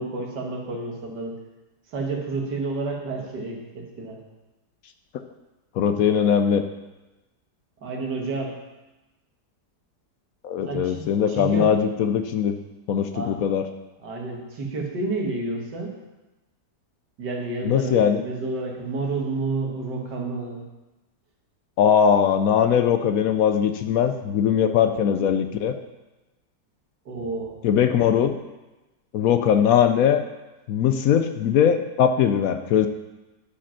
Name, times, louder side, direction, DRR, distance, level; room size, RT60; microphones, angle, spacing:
voice 1, 0.0-1.4 1.9-4.2 7.8-8.5 10.6-11.0 11.3-11.7 13.1-13.4 14.0-15.9 17.2-20.7 27.1-27.6, right 3 dB, 90° right, 0 dB, 2.1 m, -30 dB
voice 2, 5.8-6.6 10.4-12.6 12.9-13.7 17.6-18.2 21.8-25.8 27.6-28.4 29.1-30.2 30.7-32.9, left 8 dB, 70° left, 8 dB, 0.9 m, -20 dB
11.0 x 5.1 x 5.7 m, 1.1 s
omnidirectional pair, 1.8 m